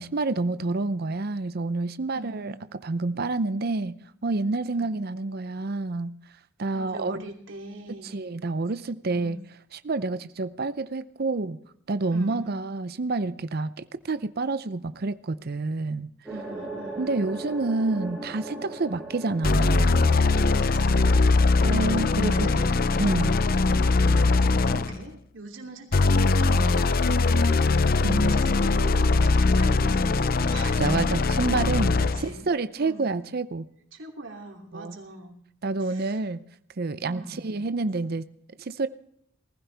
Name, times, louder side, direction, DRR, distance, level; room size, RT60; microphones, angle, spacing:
voice 1, 0.0-2.6 2.8-4.0 4.2-6.1 6.6-7.2 8.0-9.4 9.7-11.6 11.9-16.1 17.0-19.9 21.6-22.5 23.0-23.4 28.0-28.4 30.4-30.5 30.8-33.7 34.7-34.9 35.6-36.4 36.8-38.2 38.6-38.9, right 3 dB, 50° right, 13 dB, 0.6 m, -28 dB
voice 2, 2.1-2.6 4.8-4.9 6.7-8.2 9.1-9.5 12.1-12.5 16.3-17.1 20.5-21.0 22.3-22.9 24.6-30.8 32.1-32.5 32.8-33.1 33.9-35.4 35.8-36.2 37.1-37.5, right 2 dB, 70° right, 2 dB, 3.0 m, -42 dB
sound 1, 16.2-22.5, right 2 dB, ahead, 7.6 m, -39 dB
sound 2, 19.4-25.0 25.9-32.3, left 3 dB, 50° left, 0.6 m, -21 dB
20.0 x 15.0 x 3.5 m, 0.69 s
head